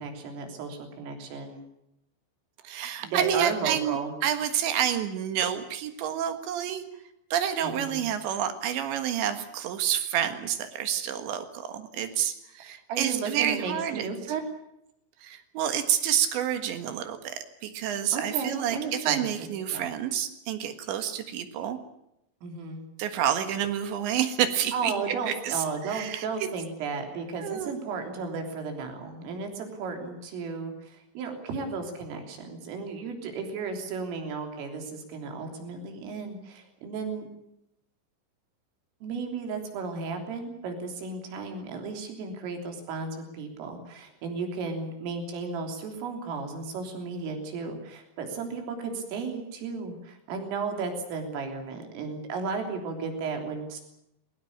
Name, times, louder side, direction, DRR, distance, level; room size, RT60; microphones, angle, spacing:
voice 1, 0.0-1.6 3.0-4.1 7.6-8.0 12.9-14.4 18.1-19.9 22.4-22.9 24.7-37.3 39.0-53.8, right 4 dB, 85° right, 4 dB, 6.0 m, -34 dB
voice 2, 2.6-6.8 7.3-14.1 15.2-21.8 23.0-24.9 25.3-25.5 25.9-26.5 27.4-27.7, right 9 dB, 70° right, 8 dB, 3.7 m, -29 dB
21.5 x 19.0 x 8.6 m, 0.81 s
omnidirectional pair, 5.7 m